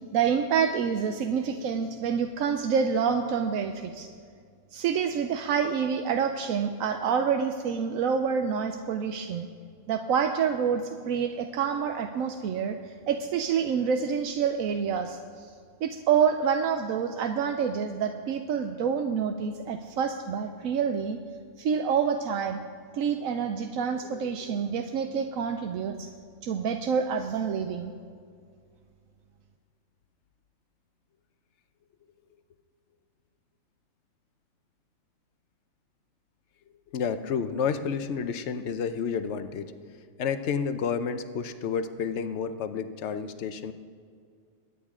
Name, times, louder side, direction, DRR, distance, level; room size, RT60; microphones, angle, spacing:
voice 1, 0.1-4.1 4.7-9.5 9.9-15.5 15.8-21.2 21.6-22.6 22.9-26.1 26.4-27.9, right 7 dB, 90° right, 6 dB, 1.1 m, -27 dB
voice 2, 36.9-39.7 40.2-43.7, left 6 dB, 60° left, 10 dB, 1.0 m, -30 dB
23.5 x 9.5 x 3.7 m, 2.1 s
omnidirectional pair, 1.4 m